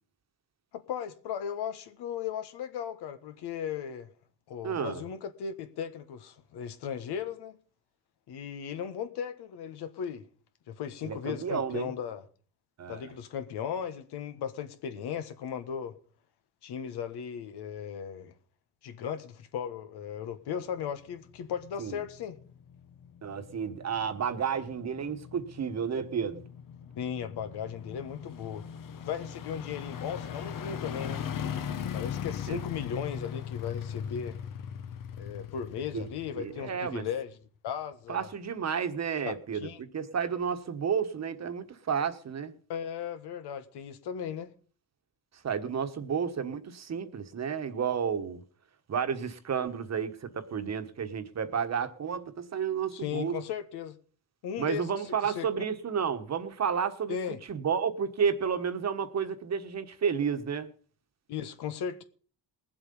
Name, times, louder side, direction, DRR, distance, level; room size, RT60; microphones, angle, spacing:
voice 1, 0.7-4.1 4.5-7.6 8.3-10.3 10.7-12.2 12.9-16.0 16.6-18.3 18.8-22.4 26.9-28.7 29.0-31.2 31.9-34.4 35.2-37.4 37.6-38.3 39.2-39.3 39.6-39.8 42.7-44.5 52.9-53.9 54.4-54.8 55.2-55.7 57.1-57.4 61.3-62.0, left 8 dB, 75° left, 1.5 m, -36 dB
voice 2, 4.6-5.0 11.0-11.9 12.8-13.1 21.8-22.0 23.2-26.4 32.5-32.6 35.9-36.0 36.4-37.0 38.1-42.5 45.4-48.4 48.9-53.4 54.6-57.2 57.5-60.7, right 7 dB, 40° right, 1.4 m, -31 dB
sound 1, 20.8-37.3 37.7-37.8, left 8 dB, 55° left, 1.2 m, -40 dB
19.5 x 7.8 x 5.4 m
cardioid pair, 110°, 40 cm